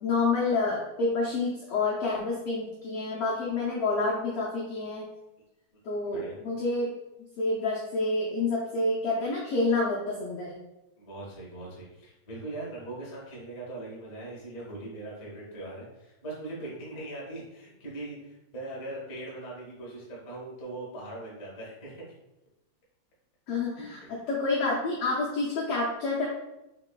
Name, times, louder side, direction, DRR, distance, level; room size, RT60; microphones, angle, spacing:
voice 1, 0.0-5.0 5.8-6.9 7.4-10.6 23.5-26.3, left 3 dB, 80° left, -4 dB, 1.3 m, -28 dB
voice 2, 6.1-6.4 11.0-22.1 24.0-24.1, right 2 dB, 65° left, -5 dB, 0.7 m, -40 dB
5.0 x 2.9 x 2.2 m, 0.93 s
omnidirectional pair, 3.4 m